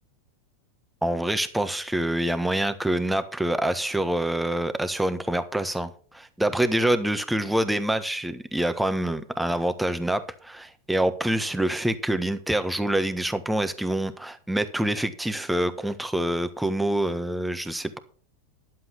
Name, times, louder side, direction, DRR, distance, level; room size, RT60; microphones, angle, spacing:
voice 1, 1.0-18.0, right 1 dB, 5° right, 1.4 m, -26 dB
11.5 x 7.8 x 6.0 m
hypercardioid pair, 110°, 0 cm